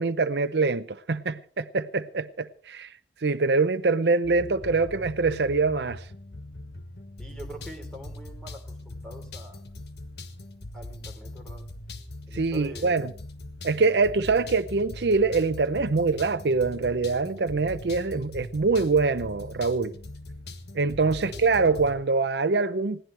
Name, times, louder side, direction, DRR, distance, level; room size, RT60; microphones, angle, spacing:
voice 1, 0.0-2.9 3.2-6.0 12.3-13.1 13.6-19.9 20.7-23.0, right 4 dB, 70° right, 0.6 m, -24 dB
sound 1, 4.2-22.0, left 1 dB, 65° left, 1.5 m, -41 dB
voice 2, 7.2-9.6 10.7-11.6 12.3-12.9 21.2-21.4, equal, 5° left, 3.6 m, -44 dB
20.5 x 17.0 x 3.3 m
head